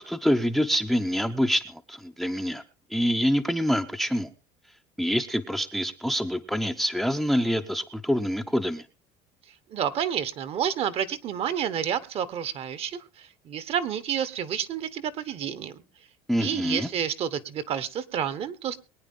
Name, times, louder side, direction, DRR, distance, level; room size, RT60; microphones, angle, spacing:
voice 1, 0.0-2.6 2.9-4.3 5.0-8.8 16.3-16.9, equal, ahead, 8 dB, 0.7 m, -26 dB
voice 2, 9.7-15.8 16.4-18.8, right 8 dB, 40° right, 15 dB, 1.3 m, -30 dB
22.5 x 9.3 x 3.7 m, 0.32 s
cardioid pair, 145°, 15 cm